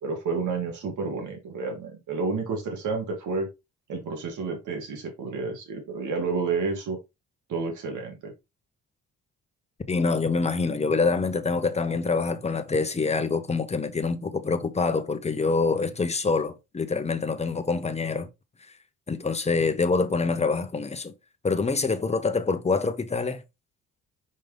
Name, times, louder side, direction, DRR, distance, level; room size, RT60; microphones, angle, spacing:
voice 1, 0.0-3.5 3.9-7.0 7.5-8.3, right 4 dB, 75° right, 2.7 m, -30 dB
voice 2, 9.9-18.3 19.1-21.1 21.4-23.4, left 4 dB, 20° left, 1.0 m, -25 dB
5.4 x 5.3 x 3.5 m
cardioid pair, 90°, 30 cm